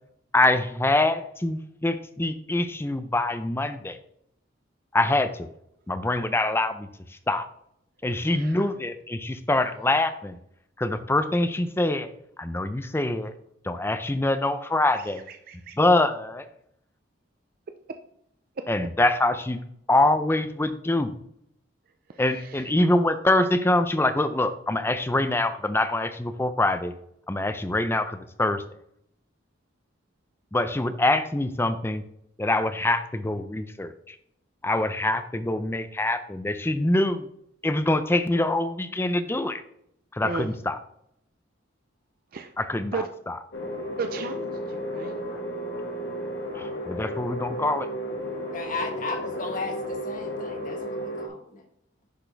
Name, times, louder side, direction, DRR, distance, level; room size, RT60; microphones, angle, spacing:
voice 1, 0.3-4.0 4.9-5.5 5.9-7.5 8.0-10.4 10.8-12.1 12.4-13.3 13.6-15.2 15.8-16.5 18.7-19.6 19.9-21.2 22.2-26.9 27.3-28.6 30.5-32.0 32.4-34.2 34.6-37.3 37.6-39.6 40.1-40.8 42.6-43.0 43.3-43.4 46.6-47.9, left 2 dB, 10° left, 10 dB, 0.5 m, -24 dB
voice 2, 8.1-8.7 15.0-15.8 22.1-22.7 40.2-40.5 42.3-42.5 42.9-43.1 44.0-45.2, right 4 dB, 50° right, 7 dB, 0.4 m, -36 dB
sound 1, 43.5-51.3, equal, 60° left, 1.3 m, -33 dB
voice 3, 48.5-51.7, left 3 dB, 45° left, 4 dB, 1.2 m, -35 dB
10.0 x 4.3 x 3.3 m, 0.72 s
head